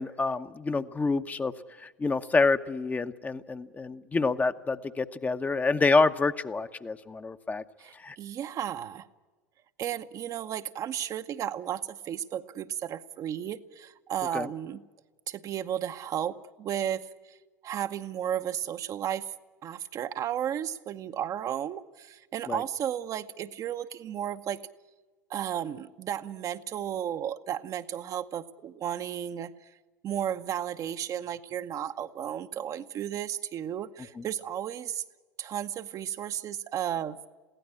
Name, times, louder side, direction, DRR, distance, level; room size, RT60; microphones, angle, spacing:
voice 1, 0.0-1.5 1.8-7.6 7.9-8.2 14.3-14.5 22.5-22.6 34.2-34.3, left 3 dB, 15° left, 9 dB, 0.9 m, -27 dB
voice 2, 7.8-9.1 9.8-14.8 15.3-17.4 17.6-19.3 19.6-24.6 25.3-29.5 30.0-35.0 35.4-37.2, right 10 dB, 40° right, 8 dB, 0.9 m, -34 dB
22.5 x 16.5 x 9.7 m, 1.3 s
figure-of-eight pair, 75°, 9 cm